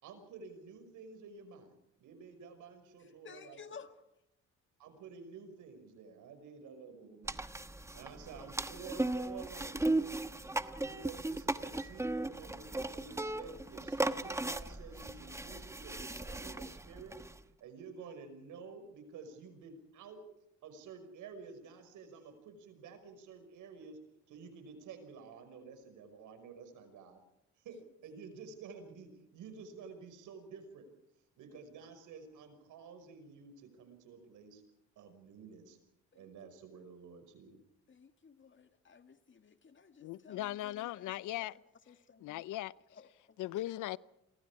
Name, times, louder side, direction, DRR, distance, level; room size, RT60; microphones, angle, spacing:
voice 1, 0.0-1.7 2.0-3.6 4.8-7.4 7.9-10.2 10.8-17.2 17.6-20.2 20.6-24.0 24.3-27.2 27.6-30.9 31.4-34.6 35.0-35.8 36.1-37.6, right 5 dB, 85° right, 5.5 m, -51 dB
voice 2, 3.0-4.1 36.1-36.3 37.9-42.4 42.9-43.4, left 6 dB, 40° left, 2.0 m, -55 dB
sound 1, 7.3-17.4, right 2 dB, 10° right, 1.1 m, -37 dB
voice 3, 40.0-41.5 42.2-42.7 43.4-44.0, left 15 dB, 85° left, 0.7 m, -38 dB
29.5 x 23.5 x 4.8 m
cardioid pair, 90°, 30 cm